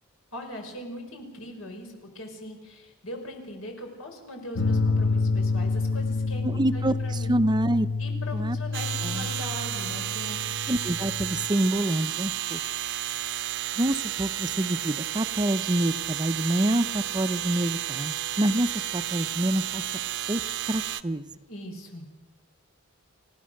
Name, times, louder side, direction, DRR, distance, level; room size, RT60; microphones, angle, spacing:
voice 1, 0.3-6.4 6.7-7.4 8.0-10.7 21.5-22.0, left 1 dB, 85° left, 2 dB, 5.4 m, -40 dB
sound 1, 4.6-11.5, left 3 dB, 70° left, 1.4 m, -28 dB
voice 2, 6.4-7.9 8.3-8.6 9.0-9.3 10.7-12.6 13.8-19.9 20.3-20.4 20.7-21.3, right 1 dB, 20° right, 12 dB, 0.6 m, -27 dB
sound 2, 8.7-21.0, right 12 dB, 60° right, 0.8 m, -32 dB
30.0 x 16.5 x 6.5 m, 1.2 s
head